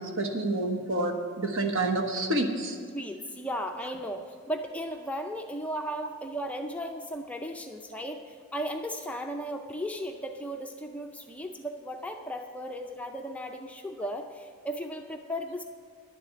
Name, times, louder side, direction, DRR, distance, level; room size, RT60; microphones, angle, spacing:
voice 1, 0.0-2.8, right 2 dB, 60° right, 3 dB, 1.3 m, -28 dB
voice 2, 2.9-15.6, equal, 5° left, 3 dB, 0.4 m, -36 dB
11.0 x 7.7 x 8.1 m, 2.1 s
head